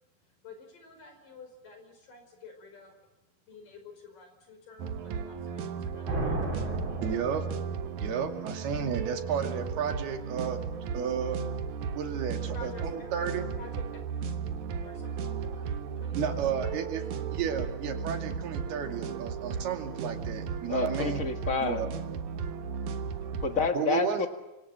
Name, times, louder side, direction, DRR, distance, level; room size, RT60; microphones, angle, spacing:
voice 1, 0.4-2.9 3.5-6.6 7.0-7.4 12.5-13.1 13.6-13.7 14.2-14.4 14.8-15.7 16.0-16.8 23.2-23.3, left 4 dB, 60° left, 6 dB, 6.5 m, -50 dB
sound 1, 4.8-23.7, right 6 dB, 60° right, 2.6 m, -35 dB
sound 2, 6.1-8.0, right 2 dB, 30° right, 4.5 m, -34 dB
voice 2, 7.0-7.5 8.0-10.6 10.9-11.4 12.0-13.5 16.2-17.0 17.3-21.2 21.6-21.9 23.7-24.3, right 7 dB, 90° right, 5 dB, 4.4 m, -32 dB
voice 3, 20.7-21.8 23.4-24.3, left 5 dB, 90° left, 6 dB, 0.7 m, -29 dB
27.5 x 26.0 x 7.6 m, 1.0 s
omnidirectional pair, 4.4 m